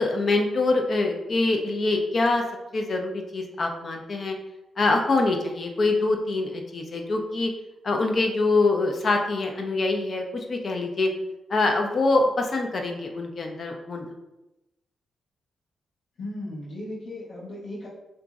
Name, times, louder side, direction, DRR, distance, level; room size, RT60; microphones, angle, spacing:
voice 1, 0.0-2.4 2.7-4.4 4.8-7.5 7.8-11.1 11.5-14.1, left 2 dB, 50° left, 3 dB, 0.4 m, -24 dB
voice 2, 16.2-17.9, left 1 dB, 80° left, -8 dB, 0.9 m, -36 dB
2.9 x 2.5 x 2.3 m, 0.97 s
cardioid pair, 80°, 0 cm